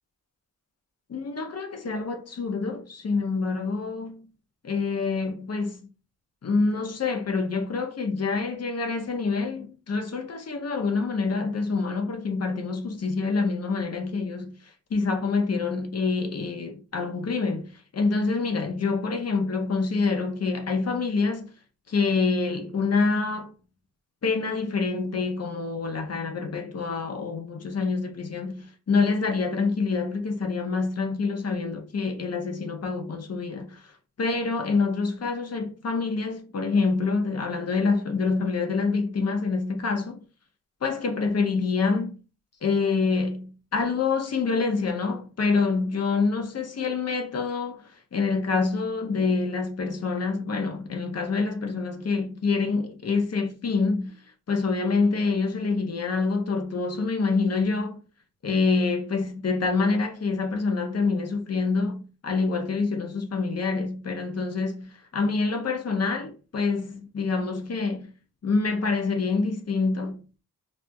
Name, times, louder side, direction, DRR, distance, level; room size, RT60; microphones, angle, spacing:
voice 1, 1.1-4.3 4.6-5.8 6.4-14.5 14.9-21.5 21.9-23.5 24.2-33.8 34.2-40.2 40.8-42.2 42.6-47.8 48.1-54.2 54.5-58.0 58.4-68.1 68.4-70.2, left 4 dB, 45° left, 0.7 m, -26 dB
4.2 x 2.1 x 2.2 m
cardioid pair, 60°, 35 cm